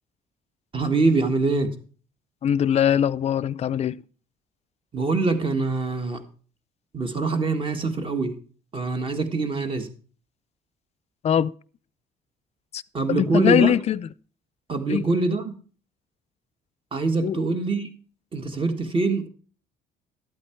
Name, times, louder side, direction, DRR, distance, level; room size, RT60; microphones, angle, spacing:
voice 1, 0.7-1.7 4.9-6.2 6.9-8.3 8.7-9.9 12.9-13.7 14.7-15.5 16.9-17.9 18.3-19.3, right 3 dB, 30° right, 1.7 m, -24 dB
voice 2, 2.4-4.0 11.2-11.5 12.7-12.8 13.1-14.0 14.9-15.0 17.2-17.4, left 9 dB, 40° left, 0.4 m, -21 dB
12.5 x 8.5 x 4.5 m
cardioid pair, 110°, 17 cm